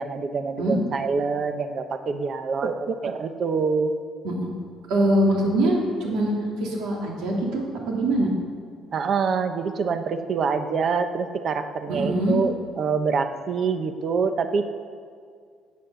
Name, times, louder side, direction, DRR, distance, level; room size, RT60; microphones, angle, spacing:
voice 1, 0.0-3.9 8.9-14.6, right 5 dB, 40° right, 8 dB, 0.8 m, -25 dB
voice 2, 4.9-6.3 6.6-8.3 11.9-12.4, right 1 dB, 90° right, -2 dB, 2.9 m, -23 dB
18.0 x 8.5 x 6.9 m, 2.1 s
cardioid pair, 155°, 0 cm